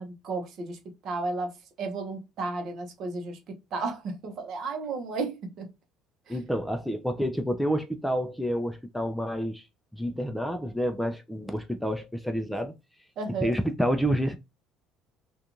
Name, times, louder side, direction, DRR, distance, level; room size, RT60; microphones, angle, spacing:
voice 1, 0.0-5.7 6.3-6.4 13.2-13.6, right 3 dB, 55° right, 0.7 m, -34 dB
voice 2, 6.3-9.6 9.9-12.7 13.4-14.4, equal, ahead, 0.3 m, -29 dB
2.5 x 2.2 x 2.9 m
cardioid pair, 135°, 0 cm